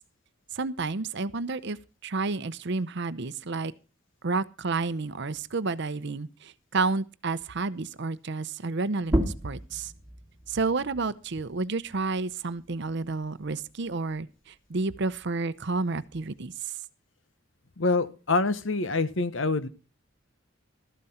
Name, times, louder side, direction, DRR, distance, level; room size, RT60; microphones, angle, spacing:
voice 1, 0.5-1.8 2.0-3.7 4.2-9.9 10.5-16.7, right 3 dB, 60° right, 0.7 m, -30 dB
sound 1, 9.0-14.2 14.6-16.4, equal, 10° right, 2.3 m, -35 dB
voice 2, 17.8-19.7, left 3 dB, 65° left, 1.0 m, -26 dB
13.5 x 11.5 x 4.3 m
head